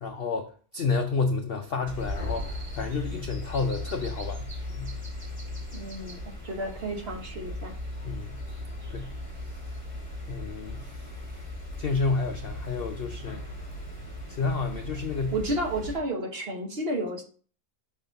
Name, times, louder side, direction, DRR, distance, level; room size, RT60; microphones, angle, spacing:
voice 1, 0.0-4.5 4.7-4.9 8.0-8.4 8.9-9.1 9.4-9.6 10.3-11.1 11.8-13.4 14.3-15.3, left 4 dB, 60° left, 5 dB, 0.6 m, -30 dB
sound 1, 1.9-16.0, left 1 dB, 5° right, 2.2 m, -37 dB
voice 2, 5.7-7.8 15.3-17.2, right 1 dB, 45° right, 2 dB, 1.2 m, -32 dB
6.1 x 4.1 x 3.8 m, 0.41 s
omnidirectional pair, 1.6 m